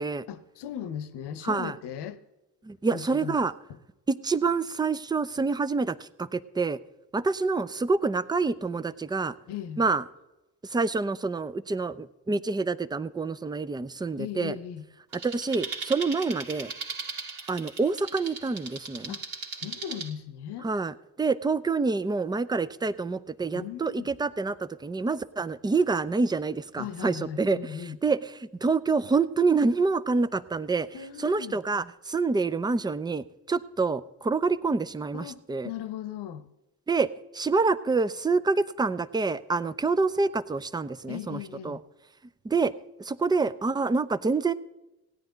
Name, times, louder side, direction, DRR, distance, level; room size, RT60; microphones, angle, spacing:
voice 1, 0.3-2.2 2.9-3.4 9.5-9.8 14.2-14.8 19.1-20.7 23.5-24.1 26.8-28.0 30.9-31.6 35.1-36.5 41.1-41.8, left 9 dB, 60° left, 0.9 m, -38 dB
voice 2, 2.6-3.5 4.1-6.8 7.1-9.3 9.8-10.0 10.7-14.5 15.2-16.7 17.5-19.1 20.6-27.8 28.0-30.9 31.2-35.7 36.9-37.1 37.3-41.4 41.6-41.8 42.4-42.7 43.0-44.5, right 4 dB, 10° right, 0.5 m, -27 dB
sound 1, 15.1-20.1, right 4 dB, 50° right, 2.0 m, -38 dB
17.0 x 9.7 x 3.9 m
hypercardioid pair, 55°, 45 cm